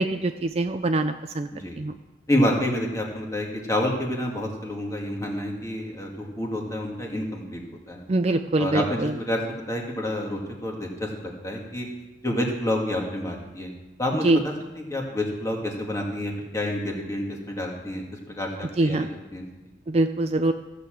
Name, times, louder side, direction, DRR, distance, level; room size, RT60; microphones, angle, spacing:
voice 1, 0.0-1.5 1.8-1.9 8.1-9.1 14.2-14.4 18.8-19.1 19.9-20.5, right 2 dB, 30° right, 8 dB, 0.4 m, -23 dB
voice 2, 2.3-7.6 7.9-8.0 8.6-9.4 9.7-11.9 12.2-13.7 14.0-19.4, left 1 dB, 15° left, 0 dB, 1.9 m, -28 dB
15.0 x 6.8 x 7.6 m, 1.1 s
head